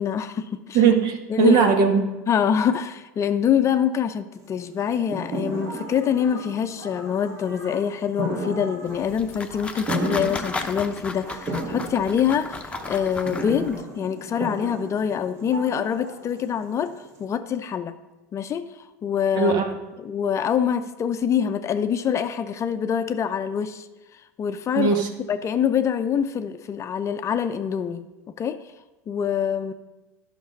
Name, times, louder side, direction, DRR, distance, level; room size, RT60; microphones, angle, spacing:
voice 1, 0.0-0.8 1.3-1.7 2.3-16.9 17.2-18.0 18.3-18.7 19.0-19.5 20.0-23.9 24.4-24.9 25.3-28.1 28.4-28.6 29.1-29.7, left 8 dB, 35° left, 9 dB, 0.6 m, -25 dB
voice 2, 0.7-2.1 19.3-19.7 24.7-25.1, right 6 dB, 55° right, 5 dB, 1.5 m, -19 dB
sound 1, 4.4-17.2, right 1 dB, 40° right, 2.0 m, -35 dB
sound 2, 5.5-16.4, right 1 dB, 90° right, 3.2 m, -42 dB
sound 3, 8.9-13.8, left 3 dB, 15° left, 0.9 m, -35 dB
11.0 x 6.0 x 5.3 m, 1.1 s
hypercardioid pair, 90°, 9 cm